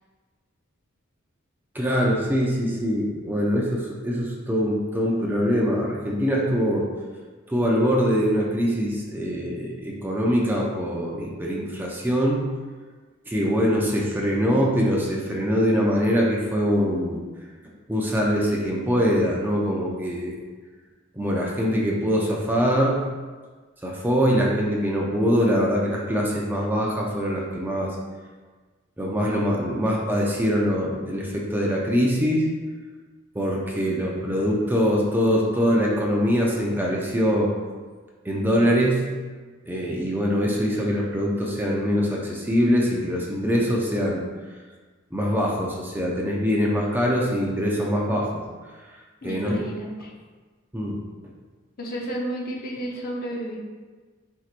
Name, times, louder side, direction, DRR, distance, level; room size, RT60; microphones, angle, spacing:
voice 1, 1.7-6.9 7.5-12.5 13.3-17.2 17.9-20.4 21.1-23.0 23.8-27.9 29.0-32.5 33.3-37.5 38.2-39.1 39.7-44.2 45.1-48.3 49.2-49.6 50.7-51.0, equal, 10° right, -3 dB, 0.5 m, -23 dB
voice 2, 49.2-50.1 51.8-53.6, right 1 dB, 50° left, -1 dB, 0.7 m, -31 dB
4.6 x 4.3 x 2.5 m, 1.4 s
head